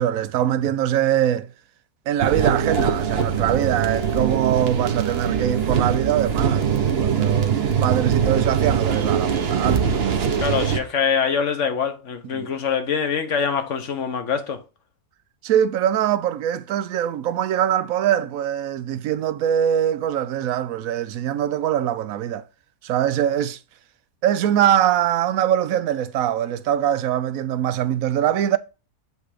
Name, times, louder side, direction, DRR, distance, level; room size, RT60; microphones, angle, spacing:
voice 1, 0.0-1.5 2.1-10.2 12.3-12.5 15.4-22.4 22.8-23.6 24.2-28.6, right 10 dB, 75° right, 1.0 m, -23 dB
sound 1, 2.2-10.8, right 7 dB, 50° right, 1.0 m, -22 dB
voice 2, 10.4-14.6, left 6 dB, 60° left, 1.2 m, -24 dB
8.1 x 3.2 x 4.9 m
omnidirectional pair, 1.5 m